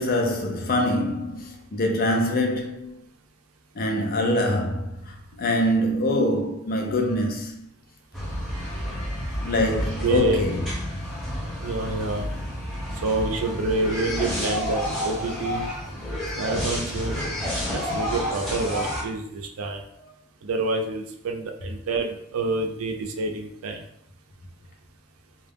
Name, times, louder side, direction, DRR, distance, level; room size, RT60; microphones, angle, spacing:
voice 1, 0.0-2.9 3.8-7.7 9.4-10.7, left 1 dB, 45° left, 0.5 m, -24 dB
sound 1, 8.1-19.0, equal, ahead, 0.7 m, -30 dB
voice 2, 10.0-10.4 11.6-12.3 13.0-15.7 16.4-17.2 17.7-19.8 20.4-23.8, right 3 dB, 80° right, 0.4 m, -27 dB
2.3 x 2.0 x 3.3 m
head